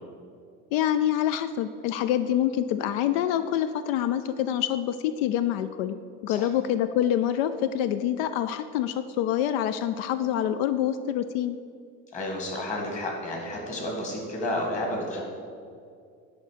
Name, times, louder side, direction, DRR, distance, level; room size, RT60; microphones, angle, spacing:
voice 1, 0.7-6.0 6.2-11.6, left 10 dB, 85° left, 11 dB, 0.5 m, -26 dB
voice 2, 12.1-15.2, left 1 dB, 25° left, 0 dB, 1.9 m, -31 dB
11.0 x 4.0 x 7.3 m, 2.3 s
cardioid pair, 160°, 29 cm